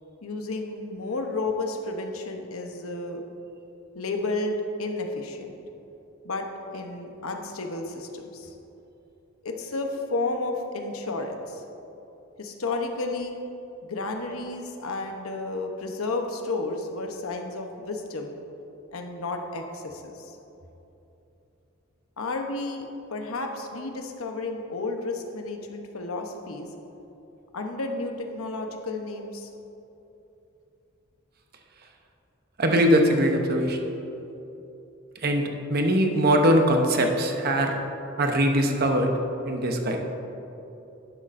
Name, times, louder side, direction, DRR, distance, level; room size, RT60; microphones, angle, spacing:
voice 1, 0.2-3.2 3.9-5.5 6.2-6.5 6.7-8.5 9.4-11.6 12.4-13.4 13.8-18.3 18.9-20.3 22.2-26.7 27.5-29.5, left 2 dB, 85° left, 3 dB, 0.9 m, -32 dB
voice 2, 32.6-33.8 35.2-37.7 38.2-39.1 39.5-40.0, equal, 50° right, 4 dB, 0.9 m, -21 dB
11.0 x 11.0 x 2.6 m, 2.9 s
head